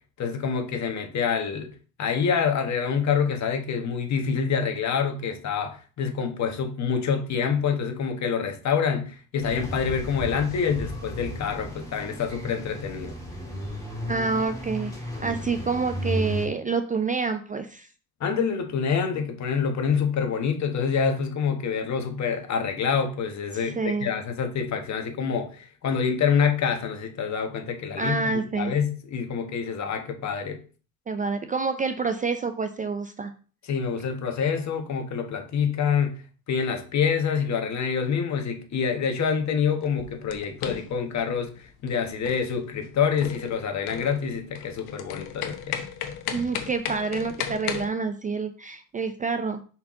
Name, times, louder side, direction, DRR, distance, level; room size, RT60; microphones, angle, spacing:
voice 1, 0.2-1.7 2.0-13.1 18.2-30.6 33.6-36.2 36.5-45.8, left 6 dB, 45° left, 1.2 m, -26 dB
sound 1, 9.4-16.5, equal, 10° left, 2.1 m, -34 dB
voice 2, 14.1-14.9 15.2-17.9 23.5-24.1 28.0-28.7 31.1-33.3 46.3-49.6, right 4 dB, 20° right, 0.4 m, -28 dB
sound 2, 39.8-47.9, left 9 dB, 80° left, 1.1 m, -35 dB
5.7 x 4.5 x 3.7 m
cardioid pair, 120°, 38 cm